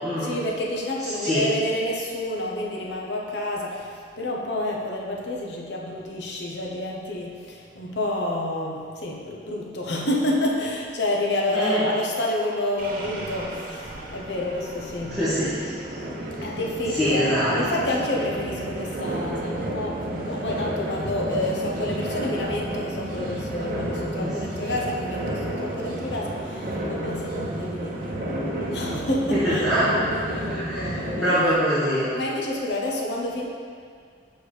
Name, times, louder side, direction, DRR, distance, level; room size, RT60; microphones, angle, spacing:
voice 1, 0.2-15.2 16.4-29.7 30.2-31.3 32.1-33.5, left 1 dB, 70° left, -2 dB, 0.8 m, -29 dB
voice 2, 11.5-11.8 15.0-15.7 16.4-16.5 17.0-17.6 24.2-24.3 29.3-29.9 30.4-31.0 31.2-32.1, equal, ahead, -16 dB, 1.3 m, -23 dB
sound 1, 12.8-31.4, right 1 dB, 55° right, 0.8 m, -31 dB
6.6 x 4.6 x 3.3 m, 2.1 s
head